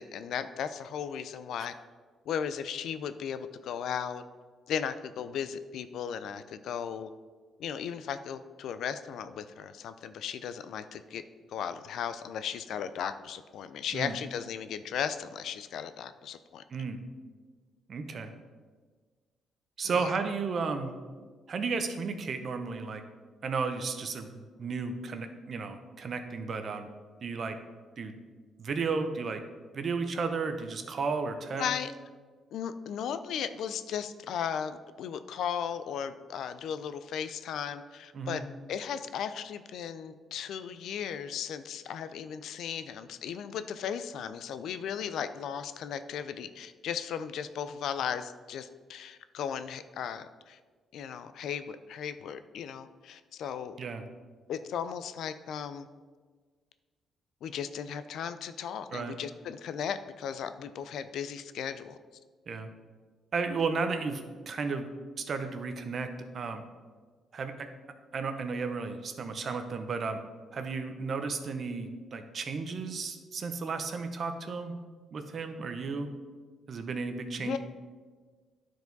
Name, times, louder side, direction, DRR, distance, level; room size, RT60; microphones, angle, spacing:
voice 1, 0.0-1.7 2.3-4.2 4.7-7.1 7.6-11.2 11.5-16.6 20.0-20.1 31.5-31.9 32.5-38.4 38.7-50.6 50.9-53.8 54.5-55.9 57.4-62.0 77.4-77.6, left 8 dB, 75° left, 11 dB, 0.4 m, -36 dB
voice 2, 17.9-18.3 19.8-20.9 21.5-23.0 23.4-26.9 27.2-27.6 28.0-28.1 28.6-29.4 29.7-31.7 38.1-38.4 53.8-54.0 58.9-59.2 62.5-62.7 63.3-64.9 65.2-66.1 66.3-66.6 67.3-67.7 68.1-70.2 70.5-74.7 75.1-76.1 76.7-77.6, right 4 dB, 50° right, 7 dB, 0.8 m, -33 dB
10.5 x 4.7 x 4.0 m, 1.5 s
cardioid pair, 90°, 0 cm